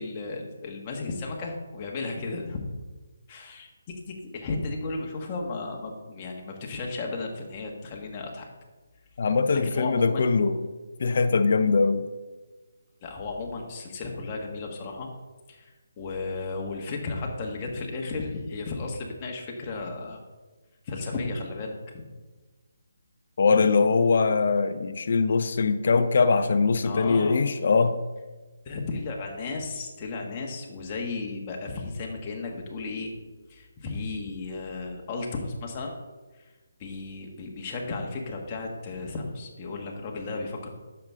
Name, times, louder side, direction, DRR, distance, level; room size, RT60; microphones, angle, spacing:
voice 1, 0.0-2.6 3.3-8.5 9.6-10.3 13.0-15.1 15.5-20.2 20.8-21.8 26.8-27.4 28.6-33.2 33.5-35.9 36.8-40.7, left 3 dB, 25° left, 0 dB, 1.6 m, -34 dB
voice 2, 9.2-10.6 11.0-12.1 23.4-28.0, left 4 dB, 55° left, 8 dB, 0.6 m, -22 dB
10.0 x 6.9 x 3.7 m, 1.3 s
figure-of-eight pair, 155°, 0 cm